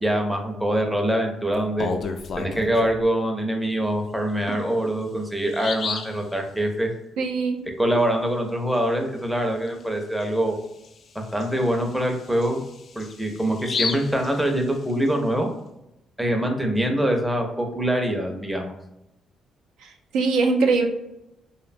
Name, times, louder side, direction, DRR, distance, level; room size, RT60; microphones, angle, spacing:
voice 1, 0.0-1.9 2.4-6.9 7.8-10.6 11.1-12.6 13.0-15.5 16.2-18.7, right 1 dB, 5° right, 2 dB, 0.5 m, -24 dB
Bird vocalization bird call bird song, 1.6-3.0 4.5-4.6 5.0-5.1 5.5-6.2 9.7-9.8 10.2-10.3 10.8-15.1, left 5 dB, 55° left, 0.3 m, -32 dB
voice 2, 7.2-7.6 19.8-20.9, right 4 dB, 90° right, 2 dB, 0.4 m, -22 dB
2.7 x 2.1 x 2.5 m, 0.86 s
cardioid pair, 90°, 0 cm